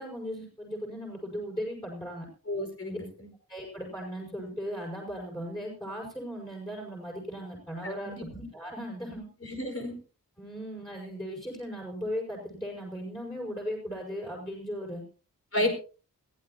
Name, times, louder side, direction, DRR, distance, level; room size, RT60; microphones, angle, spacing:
voice 1, 0.0-2.3 2.9-3.0 3.5-9.2 10.4-15.0 15.5-15.7, equal, 10° left, -1 dB, 6.1 m, -37 dB
voice 2, 2.5-3.3 7.8-8.2 9.4-10.0 15.5-15.7, left 1 dB, 40° left, 3 dB, 5.0 m, -31 dB
22.0 x 15.5 x 2.8 m, 0.37 s
wide cardioid pair, 100°, 36 cm